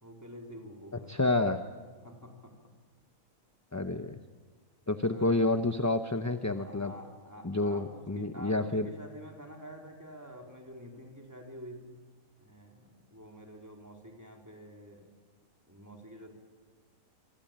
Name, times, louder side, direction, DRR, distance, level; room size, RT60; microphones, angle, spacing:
voice 1, 0.0-1.2 2.0-2.6 5.0-5.5 6.6-12.0 12.4-15.1 15.6-16.3, equal, 10° right, 1 dB, 4.1 m, -48 dB
voice 2, 1.1-1.6 3.7-4.2 4.9-6.9 7.4-8.9, left 2 dB, 15° left, 8 dB, 0.7 m, -29 dB
26.5 x 25.0 x 8.9 m, 1.5 s
omnidirectional pair, 1.4 m